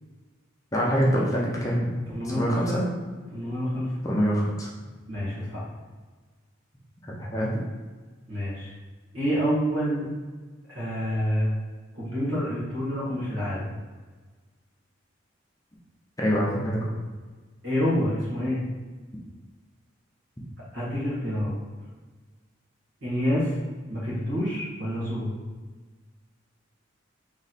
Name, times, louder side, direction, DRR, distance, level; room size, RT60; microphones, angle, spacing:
voice 1, 0.7-1.8 2.2-2.8 4.0-4.7 7.2-7.6 16.2-16.8, equal, 15° left, -4 dB, 0.6 m, -25 dB
voice 2, 2.1-2.8 3.3-4.0 5.1-5.7 8.3-8.7 9.1-10.1 10.7-11.5 11.9-13.7 17.6-18.6 20.7-21.5 23.0-23.5 23.9-25.4, equal, 65° right, -6 dB, 1.5 m, -27 dB
3.1 x 3.1 x 4.1 m, 1.4 s
head